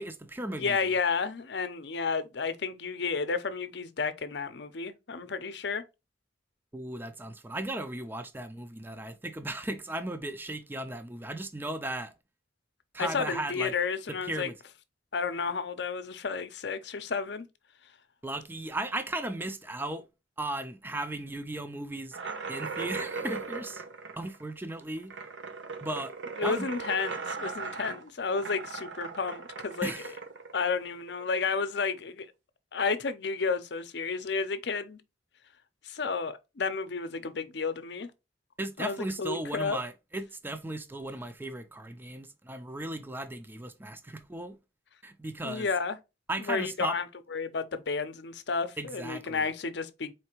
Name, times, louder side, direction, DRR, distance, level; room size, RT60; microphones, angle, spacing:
voice 1, 0.0-0.8 6.7-12.1 12.9-13.7 14.1-14.6 18.2-20.0 20.4-22.2 22.5-23.8 24.2-25.1 25.8-26.1 26.4-26.7 29.8-30.1 38.6-44.6 45.0-45.7 46.3-47.0 48.8-49.5, right 1 dB, 10° right, 0.4 m, -36 dB
voice 2, 0.5-5.8 13.0-14.5 15.1-17.5 26.4-29.9 30.5-32.3 32.7-35.0 35.8-38.1 38.8-39.8 45.4-46.0 46.4-47.1 47.3-50.1, left 5 dB, 65° left, 0.6 m, -31 dB
sound 1, 22.1-31.5, right 4 dB, 85° right, 0.8 m, -38 dB
4.4 x 3.3 x 3.0 m
head